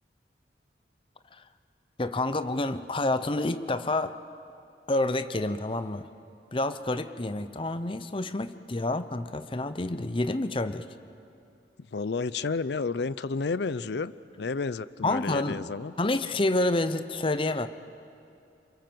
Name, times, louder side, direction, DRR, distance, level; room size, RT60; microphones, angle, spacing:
voice 1, 2.0-4.2 4.9-6.1 6.5-10.9 15.0-15.7 16.0-17.7, left 2 dB, 30° left, 12 dB, 0.7 m, -28 dB
voice 2, 11.9-14.1 14.4-15.9, left 4 dB, 70° left, 17 dB, 0.5 m, -31 dB
27.5 x 23.5 x 7.8 m, 2.7 s
head